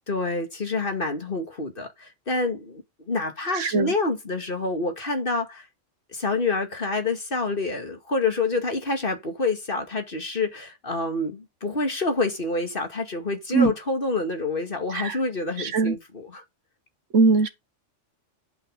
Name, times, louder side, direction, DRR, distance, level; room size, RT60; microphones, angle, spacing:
voice 1, 0.1-5.7 6.1-16.4, left 3 dB, 45° left, 2.4 m, -27 dB
voice 2, 3.5-3.9 13.5-13.7 14.9-15.2 15.6-16.0 17.1-17.5, right 4 dB, 80° right, 1.6 m, -21 dB
11.0 x 5.8 x 5.3 m
omnidirectional pair, 1.3 m